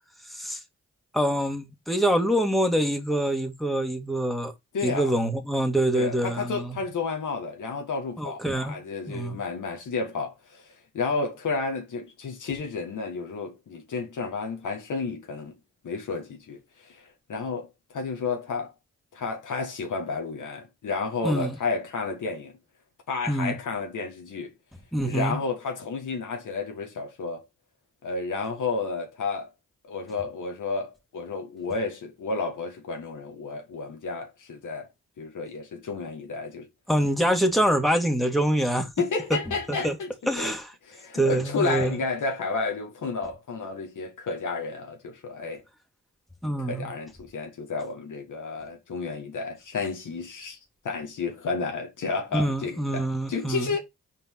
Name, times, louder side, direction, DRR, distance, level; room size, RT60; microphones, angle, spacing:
voice 1, 0.3-0.6 1.1-4.5 4.8-6.8 8.2-8.7 9.1-9.4 21.2-21.6 23.3-23.6 24.9-25.4 36.9-38.9 39.7-40.0 40.3-40.7 41.1-42.0 46.4-46.9 52.3-53.8, right 1 dB, ahead, 2.1 m, -25 dB
voice 2, 4.7-5.1 5.9-10.7 10.9-15.5 15.8-17.0 17.3-18.7 19.1-22.6 23.1-24.5 25.0-27.4 28.0-29.5 29.8-34.9 35.2-36.7 39.0-40.5 40.9-45.6 46.6-50.6 50.8-53.8, left 4 dB, 80° left, 1.8 m, -31 dB
4.5 x 4.5 x 5.9 m
supercardioid pair, 45°, 31 cm